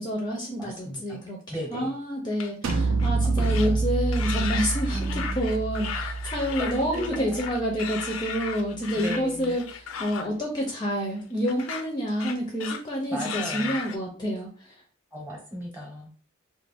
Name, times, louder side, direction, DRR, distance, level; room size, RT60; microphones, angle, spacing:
voice 1, 0.0-1.4 1.7-14.7, equal, 20° left, 0 dB, 0.5 m, -28 dB
voice 2, 0.6-1.2 1.5-2.0 3.3-3.8 4.9-5.4 6.6-7.5 8.9-9.6 13.1-13.8 15.1-16.2, equal, 10° right, 0 dB, 0.9 m, -36 dB
sound 1, 2.3-3.1 3.4-3.7 4.1-10.3 11.5-11.8 12.2-13.0 13.2-14.0, left 6 dB, 85° left, 0.4 m, -35 dB
sound 2, 2.6-8.3, right 3 dB, 80° right, 0.5 m, -28 dB
2.5 x 2.2 x 3.4 m, 0.41 s
head